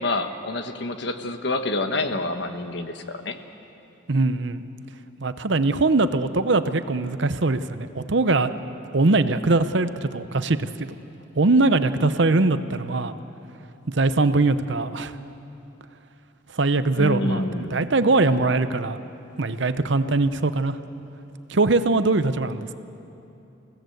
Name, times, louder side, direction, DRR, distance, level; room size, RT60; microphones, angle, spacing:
voice 1, 0.0-3.4 17.0-17.7, left 2 dB, 55° left, 7 dB, 1.3 m, -27 dB
voice 2, 4.1-4.6 5.2-8.5 8.9-10.9 11.3-13.1 13.9-15.1 16.5-19.0 19.4-20.8 21.5-22.7, right 3 dB, 60° right, 12 dB, 0.8 m, -21 dB
27.0 x 16.5 x 7.9 m, 2.9 s
head